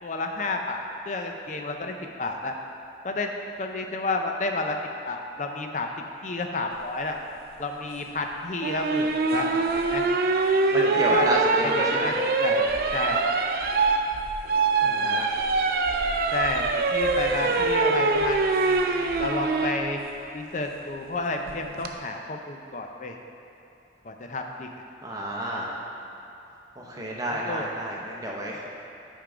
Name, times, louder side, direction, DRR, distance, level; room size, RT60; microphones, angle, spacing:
voice 1, 0.0-2.5 3.0-3.3 3.6-4.8 5.0-5.9 6.2-7.2 7.6-9.5 9.9-10.1 10.7-12.1 12.4-13.2 14.8-15.2 16.0-18.8 19.2-20.0 20.3-23.2 24.0-24.7 26.8-27.7, left 3 dB, 40° left, 3 dB, 0.5 m, -31 dB
sound 1, 8.6-19.8 21.5-21.9, right 3 dB, 55° right, 0.4 m, -24 dB
voice 2, 10.7-12.1 14.8-15.3 17.4-17.6 25.0-25.7 26.8-28.7, right 1 dB, 20° right, -3 dB, 0.8 m, -31 dB
8.6 x 3.7 x 4.9 m, 2.9 s
head